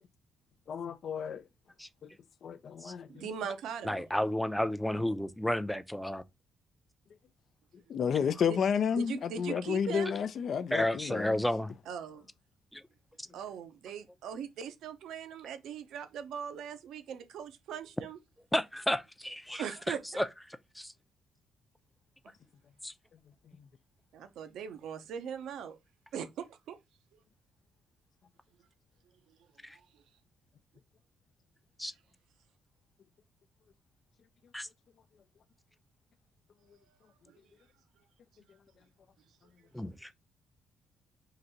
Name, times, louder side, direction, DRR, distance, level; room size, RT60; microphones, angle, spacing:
voice 1, 0.7-1.4 2.0-2.1 2.4-3.2 7.9-11.4, left 7 dB, 60° left, 0.4 m, -31 dB
voice 2, 3.1-4.1 8.9-10.1 11.9-12.3 13.3-18.2 19.6-20.0 24.1-25.8 26.1-26.8 29.9-30.0 36.9-37.0 37.3-37.4, right 7 dB, 80° right, 0.7 m, -40 dB
voice 3, 3.8-6.2 10.7-11.7 12.7-12.8 18.5-20.3 20.8-20.9 22.8-22.9 29.6-29.8 31.8-31.9 34.5-34.7 39.7-40.1, left 1 dB, 5° left, 0.5 m, -32 dB
3.8 x 2.7 x 4.4 m
cardioid pair, 90°, 0 cm